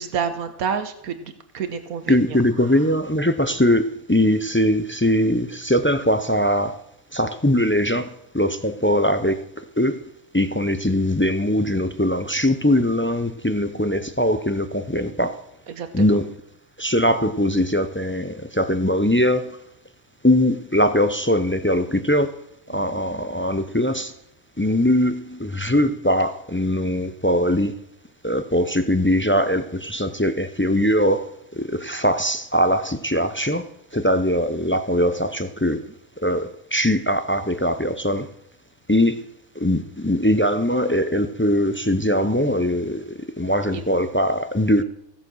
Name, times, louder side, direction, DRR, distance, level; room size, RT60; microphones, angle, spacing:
voice 1, 0.0-2.8 15.0-15.3 15.7-16.2 22.7-22.8 35.7-35.8 43.7-43.8, right 6 dB, 90° right, 1.5 m, -30 dB
voice 2, 2.1-6.8 7.1-9.4 9.8-10.0 10.3-15.4 15.9-16.3 16.8-19.6 20.2-22.3 22.7-24.1 24.6-27.7 28.2-35.8 36.2-38.3 38.9-39.2 39.5-44.8, equal, 15° left, 0.4 m, -21 dB
16.5 x 7.6 x 6.2 m
omnidirectional pair, 1.5 m